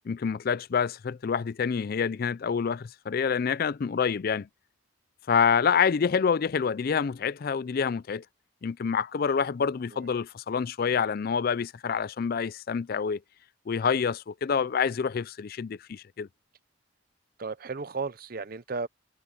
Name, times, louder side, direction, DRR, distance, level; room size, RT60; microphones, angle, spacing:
voice 1, 0.1-4.5 5.3-8.2 8.6-13.2 13.7-16.3, left 6 dB, 50° left, 0.4 m, -27 dB
voice 2, 17.4-18.9, right 4 dB, 50° right, 0.7 m, -34 dB
head